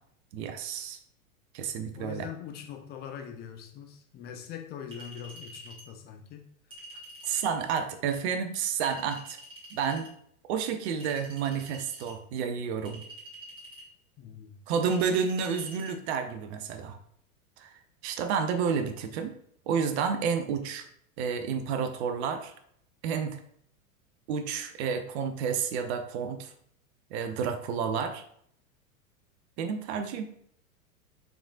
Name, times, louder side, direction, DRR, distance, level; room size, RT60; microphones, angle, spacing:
voice 1, 0.3-1.0 1.5-2.3 7.2-9.4 9.7-10.1 10.5-13.0 14.7-17.0 17.6-17.7 18.0-19.3 19.7-20.9 21.2-22.5 23.0-23.4 24.3-26.5 27.1-28.2 29.6-30.3, right 6 dB, 50° right, 7 dB, 0.6 m, -30 dB
voice 2, 1.9-6.4 6.9-7.0 14.2-14.6, left 8 dB, 25° left, 6 dB, 0.5 m, -42 dB
Chink clink, 4.9-5.9 6.7-7.6 8.8-10.1 11.0-12.2 12.8-13.9 14.8-15.9, right 1 dB, 15° right, 1.7 m, -47 dB
4.9 x 3.7 x 2.4 m, 0.65 s
figure-of-eight pair, 95°, 43 cm